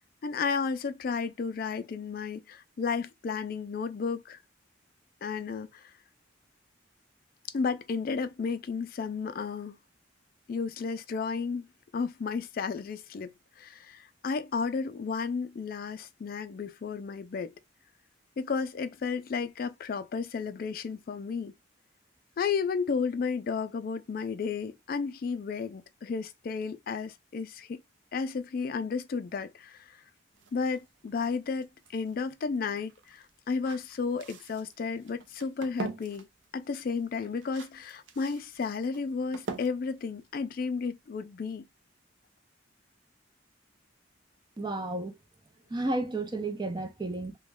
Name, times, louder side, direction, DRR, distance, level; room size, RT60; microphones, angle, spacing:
voice 1, 0.2-4.4 5.2-5.9 7.5-9.8 10.5-11.7 11.9-17.5 18.4-21.5 22.4-27.8 28.1-30.0 30.5-36.3 36.5-41.7, left 5 dB, 50° left, 0.3 m, -33 dB
sound 1, 30.3-41.2, right 4 dB, 70° right, 0.6 m, -45 dB
voice 2, 44.6-45.2 45.7-47.4, right 2 dB, 25° right, 0.5 m, -32 dB
3.0 x 2.2 x 3.4 m
head